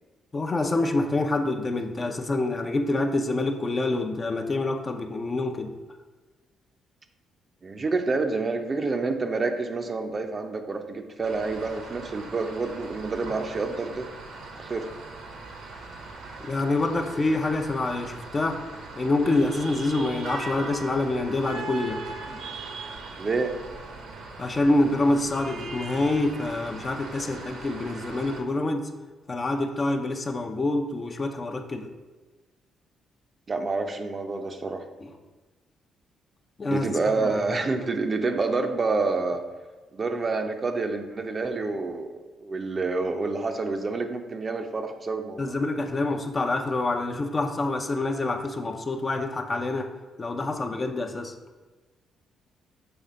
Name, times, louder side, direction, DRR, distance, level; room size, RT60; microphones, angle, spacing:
voice 1, 0.3-5.7 16.4-18.6 19.0-22.0 24.4-28.9 29.3-31.9 35.0-35.1 36.6-36.9 37.2-37.3 37.7-37.8 45.4-49.9 50.2-51.3, left 2 dB, 30° left, 5 dB, 0.7 m, -26 dB
voice 2, 7.6-14.1 14.6-14.9 23.2-23.6 33.5-34.8 36.7-39.4 39.9-45.6, right 3 dB, 35° right, 6 dB, 0.6 m, -28 dB
sound 1, 11.2-28.4, right 3 dB, 80° right, 1.1 m, -40 dB
6.9 x 3.3 x 5.1 m, 1.3 s
cardioid pair, 90°, 0 cm